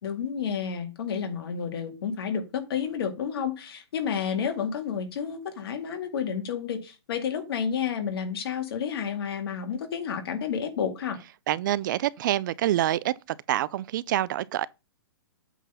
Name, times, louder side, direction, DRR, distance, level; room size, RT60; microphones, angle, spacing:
voice 1, 0.0-11.2, left 7 dB, 65° left, 2.1 m, -30 dB
voice 2, 11.5-13.1 13.5-14.7, right 13 dB, 50° right, 0.4 m, -26 dB
8.3 x 3.9 x 5.4 m
hypercardioid pair, 145°, 14 cm